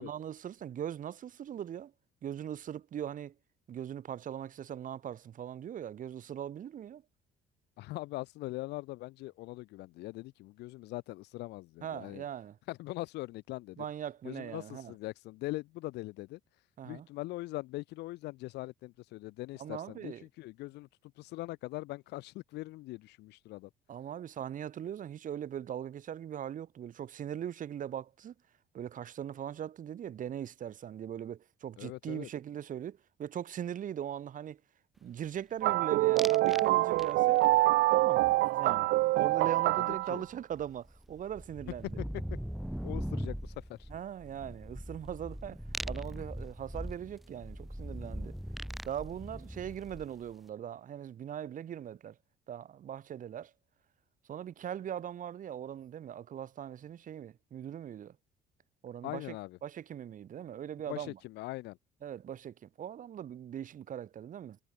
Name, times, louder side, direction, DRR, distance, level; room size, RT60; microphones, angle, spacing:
voice 1, 0.0-1.9 2.2-3.3 3.7-7.0 11.8-12.6 13.8-14.9 16.8-17.1 19.6-20.2 23.9-28.3 28.7-34.6 35.0-37.4 37.9-42.0 43.9-45.6 45.9-48.3 48.8-52.2 52.5-53.5 54.3-58.2 58.8-59.4 59.6-61.2 62.0-64.6, right 9 dB, 50° right, 2.7 m, -40 dB
voice 2, 7.8-12.2 12.7-13.9 14.2-16.4 16.8-20.9 21.2-23.7 31.8-32.3 39.8-40.2 42.0-42.1 42.8-43.9 59.0-59.6 60.9-61.8, left 19 dB, 85° left, 3.6 m, -41 dB
sound 1, 35.6-40.2, right 19 dB, 80° right, 0.7 m, -26 dB
sound 2, 36.2-36.7 37.0-37.5 39.9-40.0 40.2-50.3, equal, ahead, 0.6 m, -40 dB
cardioid pair, 110°, 17 cm